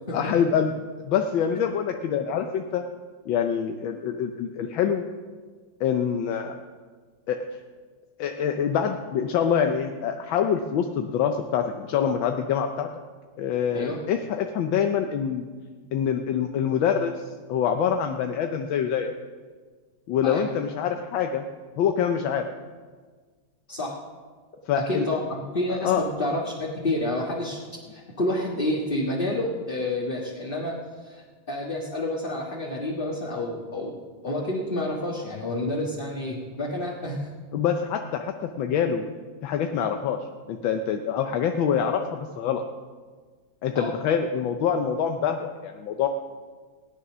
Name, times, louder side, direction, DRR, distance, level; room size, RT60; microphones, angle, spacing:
voice 1, 0.1-0.7 1.0-2.8 3.3-5.0 5.8-6.6 7.3-7.4 8.2-12.9 13.4-15.4 15.9-19.1 20.1-21.4 21.8-22.5 24.7-25.1 25.7-26.0 37.5-39.0 39.4-40.2 40.5-42.6 43.6-46.1, left 8 dB, 85° left, 5 dB, 1.6 m, -25 dB
voice 2, 23.7-24.0 24.7-27.6 27.9-34.0 34.2-37.3 43.7-43.9, left 1 dB, 30° left, -3 dB, 1.7 m, -29 dB
17.5 x 9.7 x 6.2 m, 1.5 s
omnidirectional pair, 2.1 m